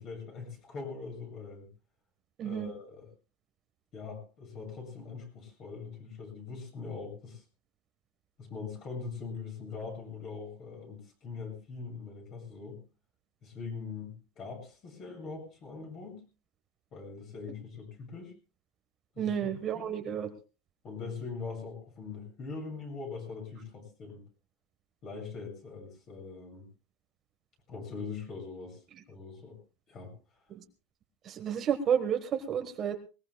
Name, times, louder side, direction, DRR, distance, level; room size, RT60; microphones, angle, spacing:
voice 1, 0.0-1.7 2.4-3.1 3.9-7.4 8.4-12.8 13.4-16.2 16.9-18.3 19.2-19.4 19.7-19.9 20.8-24.2 25.0-26.7 27.7-28.8 29.1-29.6 29.9-30.1, left 4 dB, 30° left, 3 dB, 7.6 m, -42 dB
voice 2, 2.4-2.7 19.2-20.3 30.5-30.6 31.2-33.0, right 8 dB, 25° right, 6 dB, 1.3 m, -31 dB
21.0 x 20.5 x 2.3 m, 0.33 s
supercardioid pair, 165°, 0 cm